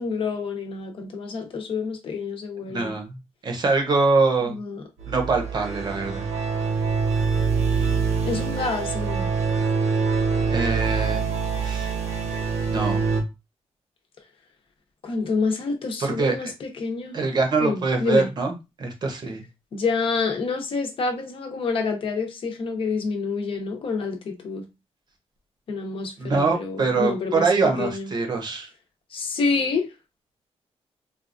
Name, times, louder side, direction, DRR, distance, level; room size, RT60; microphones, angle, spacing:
voice 1, 0.0-3.0 4.5-4.8 8.3-9.3 15.0-17.2 17.6-18.3 19.7-24.7 25.7-28.1 29.1-29.9, left 4 dB, 55° left, 0.8 m, -28 dB
voice 2, 2.6-3.2 3.4-4.6 5.1-6.3 10.5-11.2 11.6-11.9 12.7-13.0 16.0-16.4 17.1-19.4 26.2-28.7, right 4 dB, 40° right, 0.7 m, -24 dB
sound 1, 5.0-13.2, right 5 dB, 80° right, 1.0 m, -25 dB
4.1 x 2.3 x 2.5 m
wide cardioid pair, 175°, 11 cm